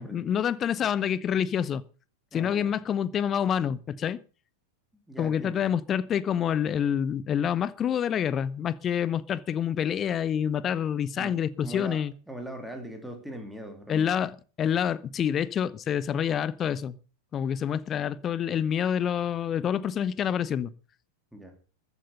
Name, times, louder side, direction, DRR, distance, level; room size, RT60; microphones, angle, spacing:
voice 1, 0.0-1.8 2.3-4.2 5.2-12.1 13.9-14.3 14.6-16.9 17.3-20.7, left 8 dB, 25° left, 0.8 m, -27 dB
voice 2, 2.3-2.8 5.1-5.6 11.2-14.1 21.3-21.6, right 1 dB, ahead, 3.0 m, -41 dB
14.5 x 8.3 x 6.6 m
figure-of-eight pair, 90°, 0 cm